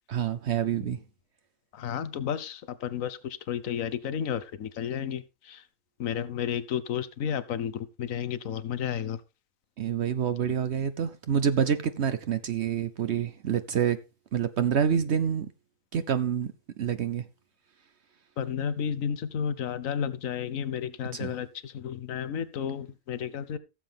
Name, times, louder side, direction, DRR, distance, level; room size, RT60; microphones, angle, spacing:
voice 1, 0.1-1.0 9.8-14.0 14.3-15.5 15.9-17.2 21.1-21.3, right 8 dB, 60° right, 0.9 m, -27 dB
voice 2, 1.7-5.6 6.0-9.2 18.4-23.6, left 8 dB, 85° left, 1.3 m, -32 dB
16.0 x 7.6 x 3.4 m
omnidirectional pair, 1.3 m